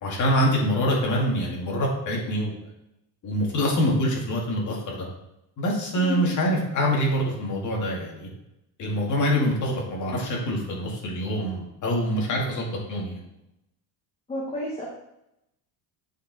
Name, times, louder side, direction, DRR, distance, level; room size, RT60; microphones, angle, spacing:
voice 1, 0.0-2.5 3.2-5.1 5.6-8.3 8.8-13.2, equal, 40° left, -2 dB, 2.1 m, -25 dB
voice 2, 6.0-6.3 14.3-14.9, left 2 dB, 15° left, -4 dB, 1.3 m, -31 dB
7.6 x 4.6 x 4.0 m, 0.85 s
cardioid pair, 145°, 44 cm